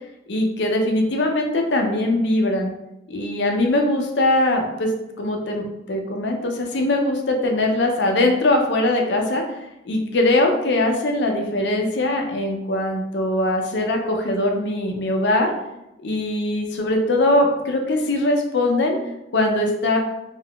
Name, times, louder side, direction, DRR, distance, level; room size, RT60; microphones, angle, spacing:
voice 1, 0.3-2.7 3.1-4.9 5.2-9.4 9.9-15.5 16.0-19.0 19.3-20.0, left 1 dB, 75° left, 2 dB, 0.5 m, -21 dB
3.5 x 2.4 x 2.3 m, 0.89 s
head